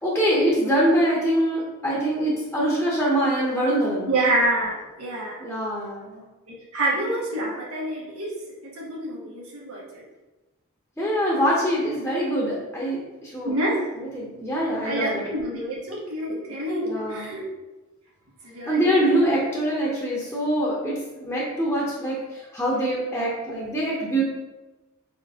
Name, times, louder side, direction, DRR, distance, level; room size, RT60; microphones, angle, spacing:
voice 1, 0.0-4.1 5.4-6.2 11.0-13.5 14.0-15.2 16.8-17.3 18.7-24.2, right 1 dB, 10° left, -5 dB, 0.8 m, -24 dB
voice 2, 4.1-5.4 6.5-8.4 8.6-10.0 13.4-13.8 14.8-17.5 18.4-19.4, right 1 dB, 90° right, -4 dB, 1.4 m, -27 dB
4.2 x 3.3 x 3.5 m, 1.1 s
head